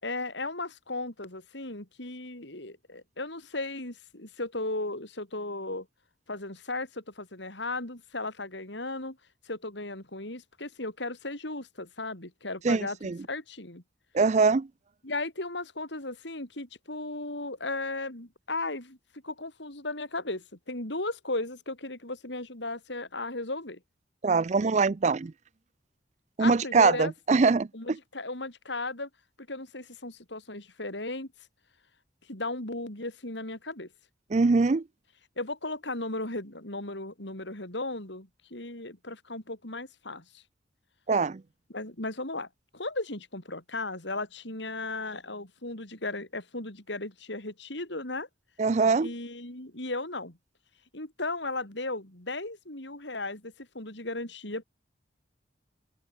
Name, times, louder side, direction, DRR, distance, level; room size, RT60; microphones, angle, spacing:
voice 1, 0.0-5.9 6.3-9.2 9.4-13.0 13.3-13.8 15.0-19.0 19.2-23.8 26.4-27.1 27.7-29.1 29.5-31.3 32.3-33.9 35.4-40.4 41.7-42.5 42.7-48.3 49.0-50.4 50.9-54.6, left 2 dB, 70° left, 5.1 m, -36 dB
voice 2, 12.6-13.2 14.1-14.7 24.2-25.3 26.4-27.7 34.3-34.8 41.1-41.4 48.6-49.1, right 4 dB, 40° right, 0.4 m, -23 dB
open air
head